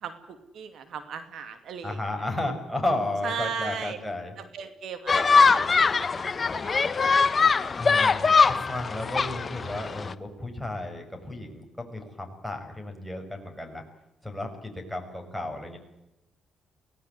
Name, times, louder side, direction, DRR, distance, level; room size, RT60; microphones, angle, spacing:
voice 1, 0.0-2.0 3.2-4.0 4.4-6.7 7.0-7.2, right 6 dB, 70° right, 9 dB, 2.4 m, -37 dB
voice 2, 1.8-4.3 7.8-13.8 14.2-15.8, left 2 dB, ahead, 2 dB, 6.0 m, -33 dB
sound 1, 5.1-10.1, left 5 dB, 35° left, 1.1 m, -22 dB
24.0 x 17.5 x 9.7 m, 0.93 s
cardioid pair, 90°, 0 cm